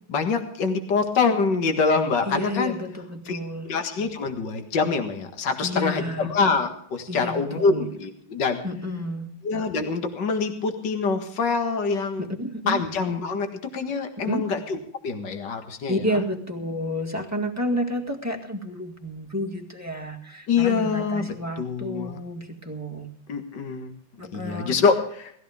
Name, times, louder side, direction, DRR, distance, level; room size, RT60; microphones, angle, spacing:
voice 1, 0.1-2.8 3.3-8.6 9.4-12.3 12.7-14.6 15.0-16.2 20.5-22.2 23.3-23.9 24.3-25.3, left 4 dB, 55° left, 6 dB, 2.3 m, -25 dB
voice 2, 2.2-3.7 5.6-6.3 7.1-7.9 8.6-9.3 12.2-12.8 14.2-14.4 15.9-23.1 24.2-24.8, equal, 10° right, 1 dB, 1.7 m, -30 dB
18.5 x 15.0 x 3.5 m, 0.63 s
omnidirectional pair, 2.4 m